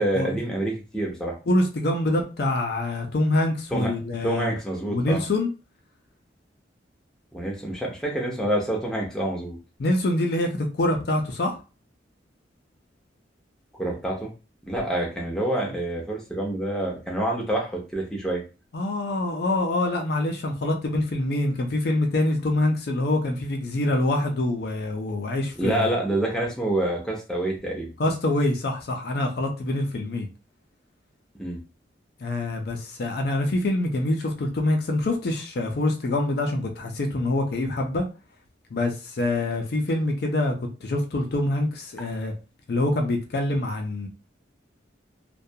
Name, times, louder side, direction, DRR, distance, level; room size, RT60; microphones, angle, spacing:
voice 1, 0.0-1.3 3.7-3.9 4.2-5.2 7.3-9.6 13.8-14.3 14.7-18.4 25.6-27.9 31.4-31.6, right 1 dB, 5° left, -2 dB, 0.6 m, -27 dB
voice 2, 1.5-4.5 4.9-5.5 9.8-11.6 18.7-25.9 28.0-30.3 32.2-38.1 38.7-40.6 40.8-42.3 42.7-44.1, left 1 dB, 55° left, 3 dB, 0.4 m, -25 dB
2.3 x 2.2 x 2.7 m, 0.31 s
head